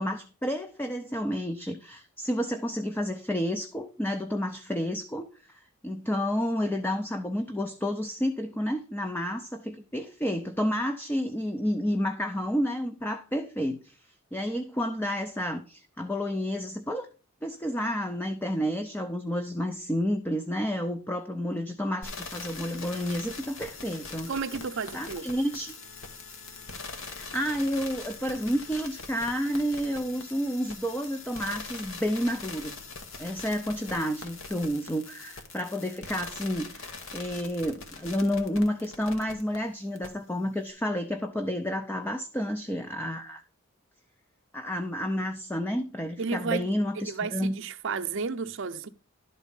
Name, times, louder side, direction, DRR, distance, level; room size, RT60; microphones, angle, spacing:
voice 1, 0.0-17.1 17.4-24.3 24.9-25.7 27.1-32.8 33.2-43.4 44.5-47.6, equal, 10° left, 0.5 m, -30 dB
sound 1, 22.0-39.6 40.0-40.1, left 4 dB, 65° left, 1.4 m, -42 dB
voice 2, 24.3-25.3 46.2-48.9, right 5 dB, 60° right, 0.6 m, -32 dB
11.5 x 4.1 x 5.3 m
head